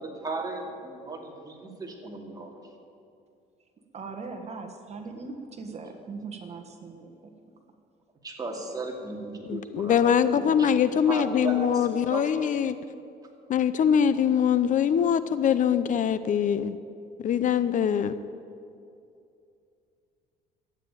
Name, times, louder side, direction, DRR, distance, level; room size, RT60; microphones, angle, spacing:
voice 1, 0.0-2.6 8.2-10.7 11.0-12.5, right 2 dB, 20° right, 2.6 m, -36 dB
voice 2, 3.9-7.3, right 4 dB, 40° right, 1.5 m, -40 dB
voice 3, 9.5-12.8 13.5-16.8 17.2-18.1, left 8 dB, 50° left, 0.6 m, -23 dB
13.0 x 9.1 x 8.9 m
cardioid pair, 110°, 17 cm